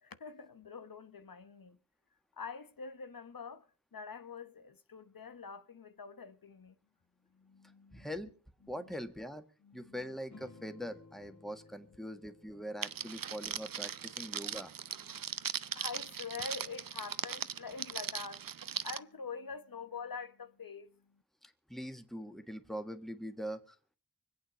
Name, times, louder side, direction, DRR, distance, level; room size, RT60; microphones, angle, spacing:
voice 1, 0.0-1.8 2.4-3.7 3.9-6.7 7.3-8.1 9.6-10.0 15.1-21.0, left 5 dB, 70° left, 1.0 m, -45 dB
voice 2, 7.9-8.3 8.7-9.4 9.7-15.0 21.7-24.0, equal, ahead, 1.7 m, -43 dB
sound 1, 10.3-15.2, left 3 dB, 55° left, 2.0 m, -59 dB
Crackle, 12.8-19.0, right 8 dB, 70° right, 0.7 m, -39 dB
24.5 x 8.8 x 5.2 m
wide cardioid pair, 50°, 35 cm